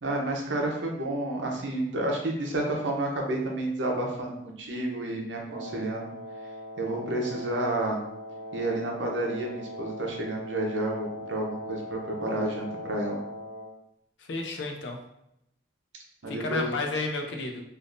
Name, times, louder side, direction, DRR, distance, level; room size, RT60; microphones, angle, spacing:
voice 1, 0.0-6.1 6.8-8.0 8.5-13.2 16.2-16.7, right 1 dB, 75° right, 0 dB, 0.7 m, -30 dB
Wind instrument woodwind instrument, 5.4-13.8, left 1 dB, 50° right, 0.5 m, -40 dB
voice 2, 14.2-15.0 16.2-17.6, left 2 dB, 75° left, 3 dB, 0.5 m, -32 dB
3.5 x 2.6 x 2.5 m, 0.79 s
head